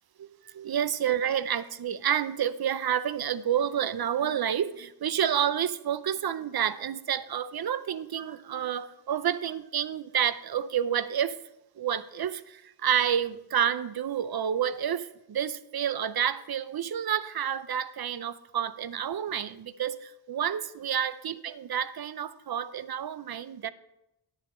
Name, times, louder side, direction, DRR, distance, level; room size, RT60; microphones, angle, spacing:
voice 1, 0.2-11.4 11.8-23.7, right 9 dB, 60° right, 15 dB, 0.6 m, -29 dB
10.5 x 7.1 x 5.5 m, 0.87 s
wide cardioid pair, 90°, 42 cm